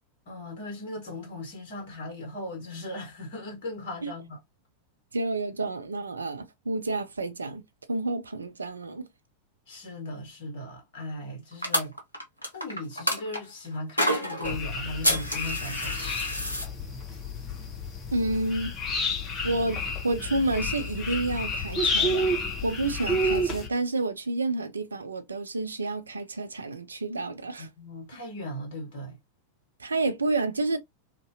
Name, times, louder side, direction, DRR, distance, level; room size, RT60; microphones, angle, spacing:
voice 1, 0.2-4.4 9.7-12.0 12.5-16.2 27.6-29.2, left 1 dB, 50° left, 1.5 m, -38 dB
voice 2, 5.1-7.6 7.9-9.1 18.1-18.7 19.4-22.4 22.6-27.7 29.8-30.8, right 2 dB, 75° right, 0.5 m, -29 dB
sound 1, 11.6-13.4 14.0-14.5 15.0-16.6, equal, 90° left, 0.8 m, -28 dB
sound 2, 14.4-23.7, left 1 dB, 25° left, 1.1 m, -30 dB
2.9 x 2.6 x 2.7 m
figure-of-eight pair, 90°, 0 cm